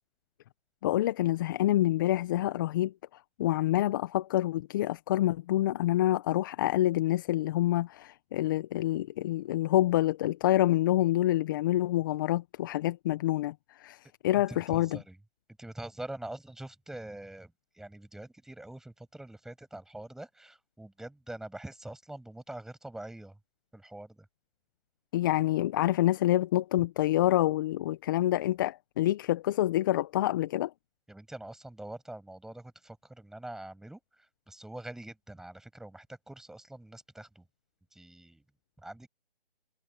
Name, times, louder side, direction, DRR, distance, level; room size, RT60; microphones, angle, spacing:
voice 1, 0.8-2.9 3.4-15.0 25.1-30.7, left 14 dB, 20° left, 1.1 m, -27 dB
voice 2, 14.4-15.2 15.6-23.4 23.7-24.2 31.1-34.0 34.5-37.4 37.9-38.4 38.8-39.1, right 1 dB, ahead, 7.2 m, -44 dB
figure-of-eight pair, 155°, 30 cm